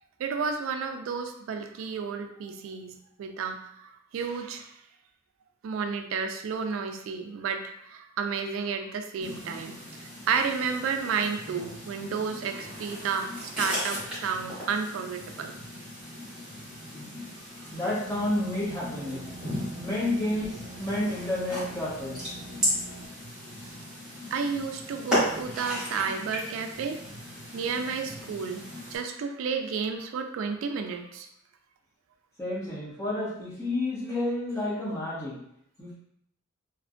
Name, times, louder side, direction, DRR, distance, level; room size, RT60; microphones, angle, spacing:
voice 1, 0.2-4.7 5.6-15.5 24.3-27.0 27.5-31.3, right 5 dB, 85° right, 6 dB, 0.3 m, -32 dB
sound 1, 9.2-29.0, equal, 5° right, 1.3 m, -36 dB
voice 2, 17.7-19.2 19.8-22.3 32.4-35.3 35.8-36.0, left 1 dB, 15° left, -9 dB, 1.1 m, -30 dB
sound 2, 18.0-23.1, right 2 dB, 45° right, 0.6 m, -45 dB
3.2 x 2.1 x 2.4 m, 0.73 s
head